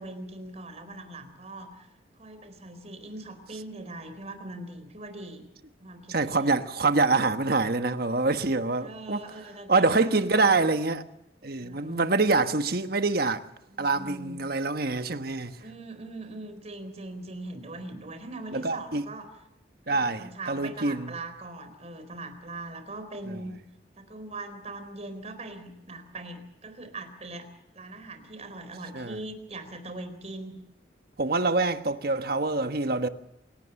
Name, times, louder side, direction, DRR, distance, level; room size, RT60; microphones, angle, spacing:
voice 1, 0.0-1.9 2.2-5.5 5.8-6.6 8.8-10.6 11.6-12.1 13.7-14.4 15.6-19.3 19.9-23.5 24.0-27.5 27.7-30.6, right 2 dB, 35° right, 4.0 m, -41 dB
voice 2, 6.1-9.2 9.7-11.0 11.4-13.4 13.8-15.5 18.5-19.0 19.9-21.1 28.9-29.2 31.2-33.1, right 3 dB, 55° right, 1.3 m, -25 dB
27.5 x 18.0 x 7.1 m
head